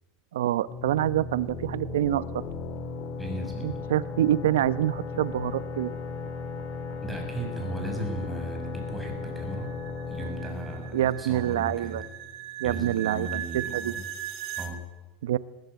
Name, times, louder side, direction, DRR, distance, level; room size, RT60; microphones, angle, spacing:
voice 1, 0.3-2.2 3.6-5.9 10.9-12.0 12.6-13.9 15.2-15.4, right 12 dB, 90° right, 16 dB, 0.8 m, -26 dB
sound 1, 0.7-12.2, left 4 dB, 50° left, 4.9 m, -36 dB
voice 2, 3.2-3.8 7.0-9.7 10.1-12.0 12.6-14.1 14.6-14.8, right 1 dB, 5° right, 1 dB, 6.6 m, -36 dB
sound 2, 7.6-14.7, right 11 dB, 55° right, 2.3 m, -39 dB
19.5 x 16.5 x 9.2 m, 1.1 s
supercardioid pair, 130°, 0 cm